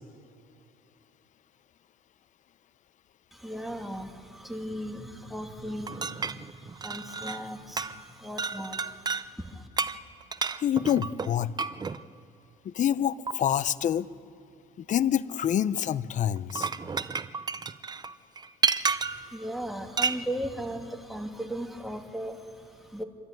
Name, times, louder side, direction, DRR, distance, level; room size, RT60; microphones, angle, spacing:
voice 1, 3.3-9.7 18.8-23.0, equal, ahead, 3 dB, 2.3 m, -37 dB
sound 1, 5.9-7.5 7.8-8.1 8.4-9.3 9.8-12.0 13.3-13.4 16.4-19.3 20.0-20.2, right 5 dB, 25° right, 0.6 m, -31 dB
voice 2, 10.6-11.5 12.6-14.1 14.8-16.7, left 10 dB, 45° left, 16 dB, 0.7 m, -26 dB
26.0 x 12.5 x 9.2 m, 2.4 s
cardioid pair, 110°, 17 cm